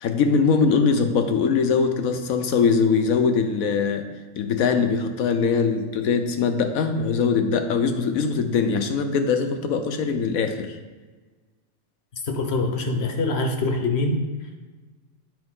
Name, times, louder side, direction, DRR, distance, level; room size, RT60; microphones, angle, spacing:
voice 1, 0.0-4.0 4.4-10.7, left 5 dB, 80° left, 6 dB, 1.2 m, -22 dB
voice 2, 12.2-14.2, left 2 dB, 55° left, 4 dB, 1.0 m, -24 dB
8.9 x 5.3 x 3.7 m, 1.4 s
omnidirectional pair, 1.4 m